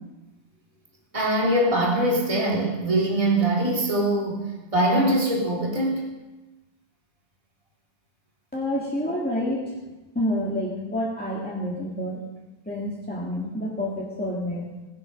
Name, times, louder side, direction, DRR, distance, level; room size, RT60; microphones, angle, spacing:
voice 1, 1.1-4.4 4.7-6.0, right 1 dB, 20° right, -3 dB, 3.1 m, -22 dB
voice 2, 8.5-9.8 10.1-12.2 12.7-14.7, left 1 dB, 5° left, -4 dB, 2.1 m, -28 dB
22.0 x 8.3 x 5.3 m, 1.1 s
omnidirectional pair, 1.7 m